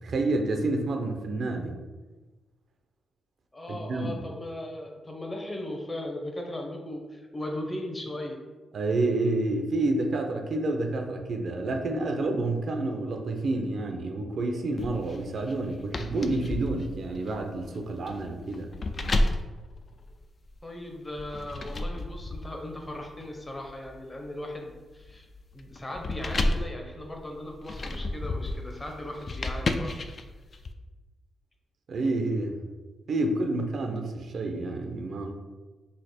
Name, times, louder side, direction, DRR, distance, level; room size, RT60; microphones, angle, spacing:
voice 1, 0.0-1.8 3.7-4.2 8.7-18.7 31.9-32.5 33.1-35.3, right 2 dB, 65° right, 4 dB, 0.5 m, -29 dB
voice 2, 3.5-8.4 20.6-25.3 25.5-30.0, left 1 dB, 25° left, 1 dB, 0.8 m, -37 dB
sound 1, 14.8-20.6 21.2-30.7, left 2 dB, 50° left, 0.3 m, -33 dB
3.2 x 2.0 x 4.2 m, 1.3 s
supercardioid pair, 55°, 0 cm